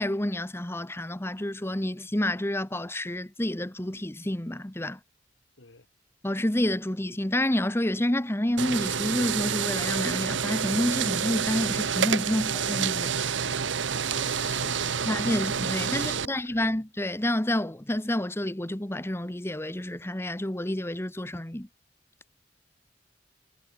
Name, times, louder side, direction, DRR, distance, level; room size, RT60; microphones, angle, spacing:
voice 1, 0.0-5.0 6.2-13.1 15.1-21.7, left 1 dB, 15° left, 1.1 m, -29 dB
sound 1, 8.6-16.3, right 7 dB, 85° right, 1.0 m, -28 dB
voice 2, 14.0-15.4 15.8-16.6, left 4 dB, 80° left, 1.8 m, -47 dB
head